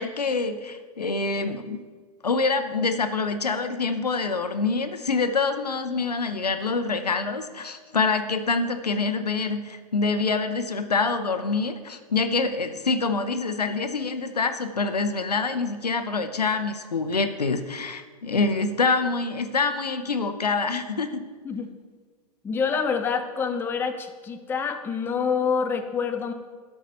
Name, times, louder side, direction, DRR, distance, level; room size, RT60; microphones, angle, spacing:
voice 1, 0.0-1.8 2.2-21.3, left 4 dB, 85° left, 9 dB, 0.7 m, -26 dB
voice 2, 22.4-26.3, left 6 dB, 10° left, 7 dB, 0.5 m, -27 dB
12.5 x 4.9 x 4.1 m, 1.5 s
figure-of-eight pair, 105°, 20 cm